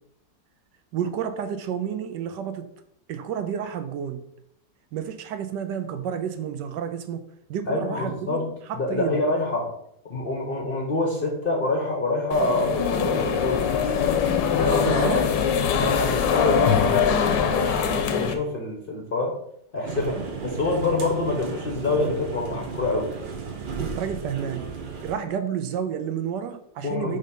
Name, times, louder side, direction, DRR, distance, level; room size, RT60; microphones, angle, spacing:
voice 1, 0.9-2.7 3.1-4.2 4.9-7.2 7.5-9.2 14.8-15.2 23.8-24.7 25.0-27.2, right 8 dB, 75° right, 8 dB, 1.2 m, -30 dB
voice 2, 7.7-8.5 8.8-9.7 10.1-15.2 15.8-19.4 19.7-23.1 26.8-27.2, left 2 dB, 40° left, 0 dB, 0.9 m, -26 dB
sound 1, 12.3-18.3, left 7 dB, 80° left, 1.4 m, -23 dB
sound 2, 19.8-25.1, right 5 dB, 55° right, 0.5 m, -34 dB
5.1 x 3.7 x 5.3 m, 0.72 s
omnidirectional pair, 1.9 m